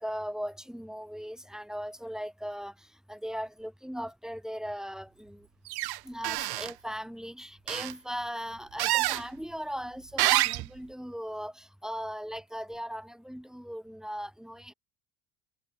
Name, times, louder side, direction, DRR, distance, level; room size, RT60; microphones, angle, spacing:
voice 1, 0.0-5.5 6.0-14.7, equal, ahead, 7.6 m, -38 dB
sound 1, 5.7-6.0 6.2-6.7 7.7-7.9 8.8-9.2 10.2-10.7, right 19 dB, 65° right, 1.7 m, -27 dB
supercardioid pair, 85°, 41 cm